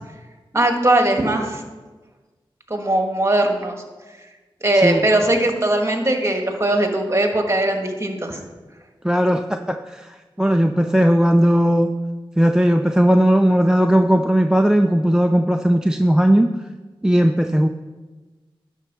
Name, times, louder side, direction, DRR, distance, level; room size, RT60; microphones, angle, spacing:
voice 1, 0.5-1.6 2.7-3.8 4.6-8.4, right 1 dB, 30° right, 3 dB, 1.6 m, -19 dB
voice 2, 9.0-11.9 12.4-16.5 17.0-17.7, equal, 5° right, 6 dB, 0.5 m, -17 dB
11.0 x 4.5 x 6.0 m, 1.3 s
cardioid pair, 40°, 10 cm